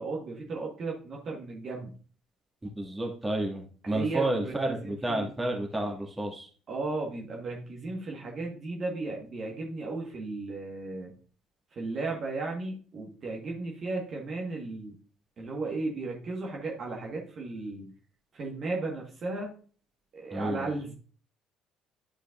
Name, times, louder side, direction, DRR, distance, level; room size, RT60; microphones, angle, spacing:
voice 1, 0.0-1.9 3.8-5.3 6.7-11.1 11.7-14.9 15.4-17.9 18.3-19.5 20.1-20.9, right 3 dB, 45° right, -1 dB, 1.6 m, -35 dB
voice 2, 2.6-6.5 20.3-20.7, right 1 dB, 15° right, 1 dB, 2.0 m, -31 dB
11.5 x 5.0 x 2.5 m, 0.40 s
figure-of-eight pair, 50°, 0 cm